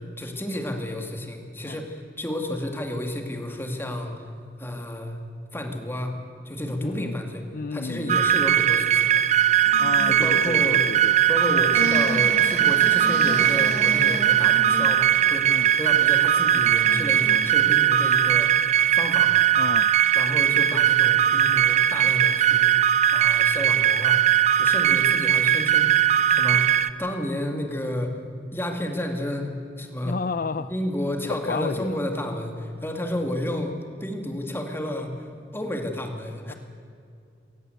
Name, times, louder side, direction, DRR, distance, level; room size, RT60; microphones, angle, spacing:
voice 1, 0.0-4.2 4.6-5.2 5.5-6.2 6.4-7.4 7.7-9.2 10.0-10.9 11.3-18.5 18.9-19.5 20.1-24.2 24.5-26.7 27.0-28.1 28.5-30.2 30.6-36.5, left 1 dB, 15° left, 3 dB, 2.5 m, -31 dB
voice 2, 6.8-7.2 7.5-8.1 9.8-11.1 15.5-15.7 19.6-19.9 30.0-30.7 31.5-32.0 36.5-36.6, left 4 dB, 55° left, 13 dB, 0.5 m, -31 dB
sound 1, 8.1-26.9, right 10 dB, 40° right, 0.7 m, -20 dB
sound 2, 9.5-17.5, equal, 60° right, 5.6 m, -35 dB
22.0 x 19.0 x 8.1 m, 2.5 s
head